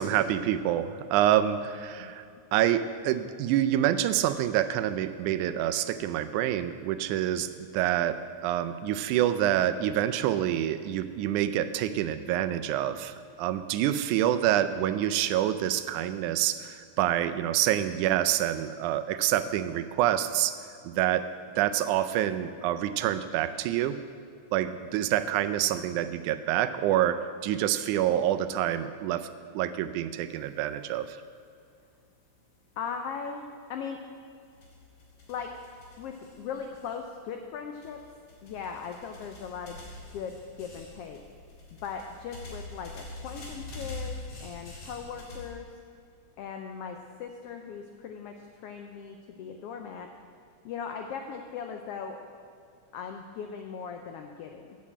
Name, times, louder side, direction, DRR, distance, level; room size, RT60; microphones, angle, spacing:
voice 1, 0.0-2.2 2.5-20.6 20.8-21.3 21.6-24.0 24.5-29.3 29.5-31.2, right 12 dB, 85° right, 11 dB, 2.0 m, -27 dB
voice 2, 32.8-34.0 35.3-35.5 36.0-38.0 38.4-39.8 40.1-41.2 41.8-45.7 46.4-50.1 50.6-52.2 52.9-54.8, left 6 dB, 85° left, 4 dB, 1.3 m, -39 dB
sound 1, 34.5-37.3 37.8-45.5, left 2 dB, 55° left, 3.1 m, -45 dB
8.7 x 7.2 x 8.3 m, 2.4 s
omnidirectional pair, 3.4 m